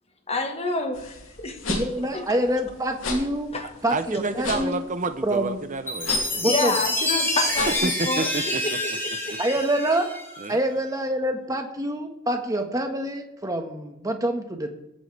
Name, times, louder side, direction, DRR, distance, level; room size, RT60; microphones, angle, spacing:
voice 1, 0.3-1.6 2.1-2.2 3.5-3.7 6.4-8.3 9.3-9.4, left 3 dB, 30° left, 5 dB, 1.6 m, -28 dB
sound 1, 0.9-7.8, left 3 dB, 70° left, 2.9 m, -35 dB
voice 2, 1.7-3.6 3.8-4.8 5.2-5.6 6.4-6.7 9.4-10.1 10.5-14.7, right 1 dB, 15° right, 4 dB, 1.5 m, -26 dB
voice 3, 3.9-6.5 7.7-8.6 10.4-10.6, right 3 dB, 35° right, 10 dB, 0.7 m, -29 dB
Chime, 5.9-10.5, left 1 dB, 10° left, 3.0 m, -27 dB
22.5 x 9.1 x 3.4 m, 0.88 s
head